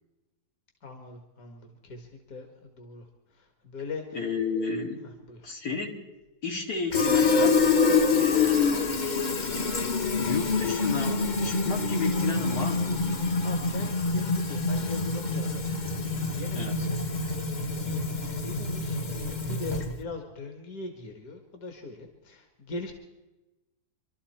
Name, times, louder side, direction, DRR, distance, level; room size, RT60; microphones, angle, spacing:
voice 1, 0.8-2.5 2.8-3.0 3.4-4.0 5.0-5.5 13.4-17.0 17.3-18.1 18.4-22.9, left 3 dB, 65° left, 4 dB, 2.1 m, -41 dB
voice 2, 4.1-5.0 5.4-6.0 6.4-7.6 8.1-9.1 10.1-13.0 16.5-16.8, left 4 dB, 80° left, 0 dB, 2.5 m, -32 dB
Fill (with liquid), 6.9-20.0, left 4 dB, 35° left, 0.8 m, -26 dB
26.0 x 12.5 x 4.3 m, 1.0 s
omnidirectional pair, 1.7 m